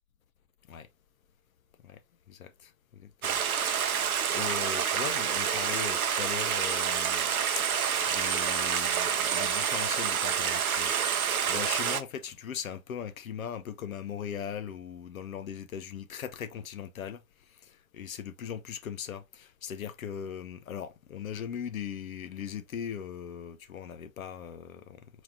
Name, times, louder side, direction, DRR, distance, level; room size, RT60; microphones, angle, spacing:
voice 1, 2.3-3.4 3.9-17.2 17.5-25.2, left 8 dB, 70° left, 0.9 m, -39 dB
Stream, 3.2-12.0, right 7 dB, 80° right, 0.7 m, -28 dB
4.4 x 4.0 x 2.8 m
figure-of-eight pair, 85°, 43 cm